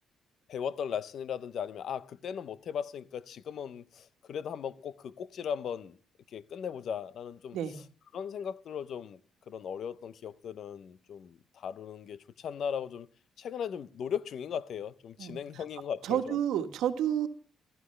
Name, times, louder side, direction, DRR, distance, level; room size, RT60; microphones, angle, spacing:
voice 1, 0.5-6.0 6.3-7.8 8.1-9.2 9.5-13.1 13.4-16.4, left 7 dB, 65° left, 0.7 m, -37 dB
voice 2, 16.0-17.3, right 10 dB, 85° right, 1.4 m, -30 dB
15.0 x 13.5 x 3.3 m
cardioid pair, 90°, 0 cm